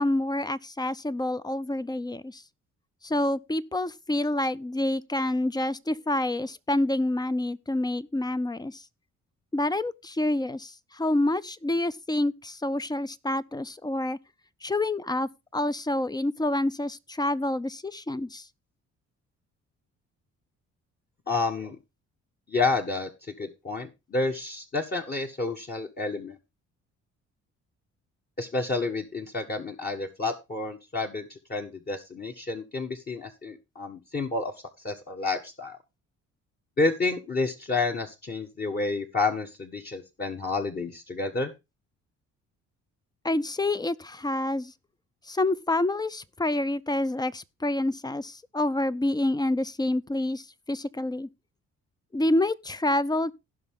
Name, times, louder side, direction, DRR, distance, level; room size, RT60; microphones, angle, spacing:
voice 1, 0.0-2.4 3.0-8.8 9.5-14.2 14.6-18.5 43.2-44.7 45.3-51.3 52.1-53.3, left 1 dB, 15° left, 0.6 m, -28 dB
voice 2, 21.3-21.8 22.5-23.1 23.4-26.4 28.4-34.5 34.8-35.8 36.8-41.5, left 3 dB, 30° left, 1.5 m, -30 dB
16.5 x 5.7 x 3.7 m
cardioid pair, 90°, 30 cm